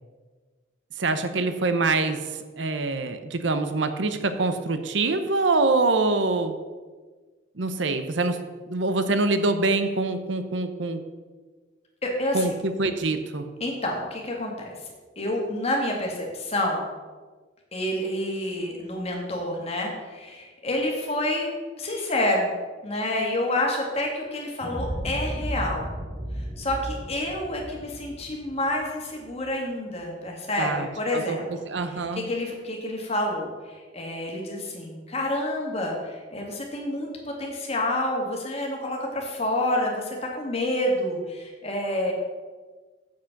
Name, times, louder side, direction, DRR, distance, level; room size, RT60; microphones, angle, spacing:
voice 1, 1.0-6.6 7.6-8.4 8.7-11.0 12.3-13.5 30.6-32.2, right 3 dB, 75° right, 9 dB, 0.8 m, -25 dB
voice 2, 12.0-12.5 13.6-14.7 15.2-16.8 17.7-21.5 21.8-22.5 22.8-25.9 26.4-31.4 32.2-42.1, left 1 dB, 35° left, 0 dB, 2.0 m, -28 dB
sound 1, 24.6-29.4, equal, 15° right, 1.2 m, -34 dB
7.5 x 7.5 x 5.9 m, 1.4 s
head